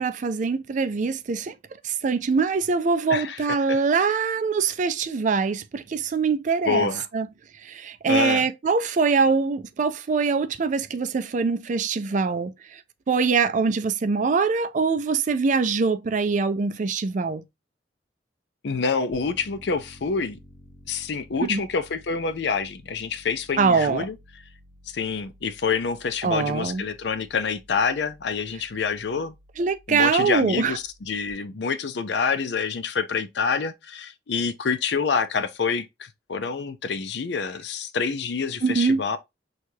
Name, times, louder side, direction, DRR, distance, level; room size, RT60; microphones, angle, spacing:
voice 1, 0.0-1.6 1.8-6.9 7.1-7.3 7.6-12.8 13.1-17.4 21.5-21.6 23.6-24.0 26.2-26.8 29.6-30.8 38.6-39.0, right 4 dB, 45° right, 0.4 m, -23 dB
voice 2, 3.1-3.8 6.7-7.1 8.0-8.4 18.6-20.4 20.9-24.1 24.9-29.4 29.9-39.2, left 5 dB, 65° left, 0.5 m, -27 dB
Piano, 19.1-31.3, equal, 25° left, 1.1 m, -52 dB
6.3 x 2.4 x 2.7 m
head